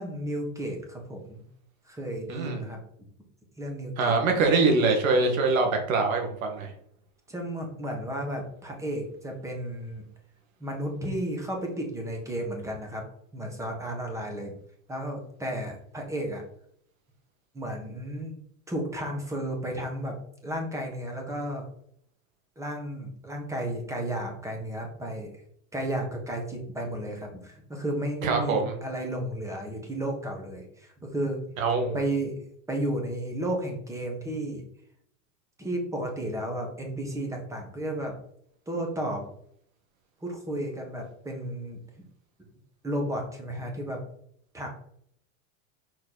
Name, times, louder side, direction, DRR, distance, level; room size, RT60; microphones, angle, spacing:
voice 1, 0.0-1.4 1.8-2.8 3.6-4.2 7.3-10.0 10.6-13.0 13.3-14.5 14.9-16.4 17.5-18.4 18.7-20.1 20.4-21.7 22.6-25.3 25.7-31.4 31.9-32.4 32.7-34.6 35.6-38.2 38.7-39.2 40.2-41.8 42.8-44.0 44.5-44.7, right 1 dB, 5° right, 2 dB, 1.4 m, -33 dB
voice 2, 4.0-6.7 28.2-28.7 31.6-32.0, right 3 dB, 80° right, 3 dB, 2.0 m, -24 dB
6.1 x 4.2 x 4.1 m, 0.67 s
supercardioid pair, 145°, 40 cm